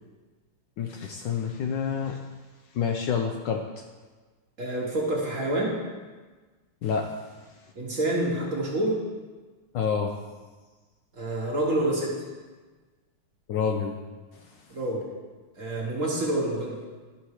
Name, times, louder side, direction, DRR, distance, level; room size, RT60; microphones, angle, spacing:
voice 1, 0.8-2.2 2.7-3.6 6.8-7.1 9.7-10.1 13.5-14.0, left 6 dB, 75° left, 3 dB, 1.1 m, -28 dB
voice 2, 4.6-5.8 7.7-9.0 11.1-12.1 14.7-15.1 15.6-16.8, right 1 dB, 45° right, -3 dB, 1.4 m, -27 dB
11.5 x 4.3 x 4.8 m, 1.3 s
omnidirectional pair, 2.3 m